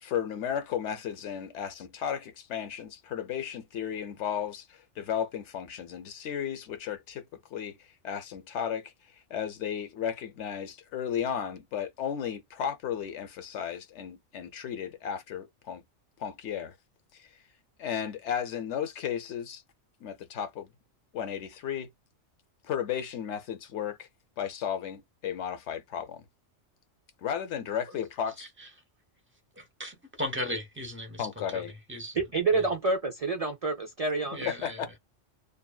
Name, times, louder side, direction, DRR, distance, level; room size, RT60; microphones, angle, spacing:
voice 1, 0.0-15.8 16.2-16.7 17.1-17.3 17.8-19.6 20.0-20.7 21.1-21.9 22.6-24.1 24.4-26.2 27.2-28.5 31.2-31.7 34.5-35.0, left 8 dB, 70° left, 0.9 m, -34 dB
voice 2, 28.4-28.7 29.5-32.2 32.5-32.7 34.2-34.8, left 1 dB, 10° right, 0.7 m, -37 dB
voice 3, 32.2-34.5, right 3 dB, 55° right, 0.4 m, -28 dB
2.7 x 2.4 x 2.3 m
omnidirectional pair, 1.3 m